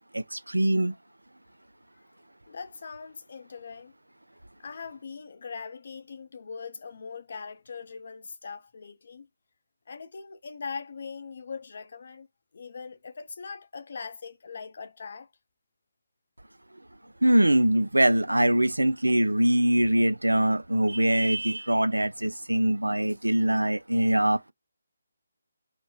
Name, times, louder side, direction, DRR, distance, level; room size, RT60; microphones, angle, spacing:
voice 1, 0.1-0.9 17.2-24.4, right 1 dB, 80° right, 0.3 m, -23 dB
voice 2, 2.5-3.9 4.6-9.3 9.9-12.3 12.5-15.3, left 5 dB, 50° left, 0.5 m, -41 dB
3.2 x 2.1 x 2.2 m
figure-of-eight pair, 150°, 0 cm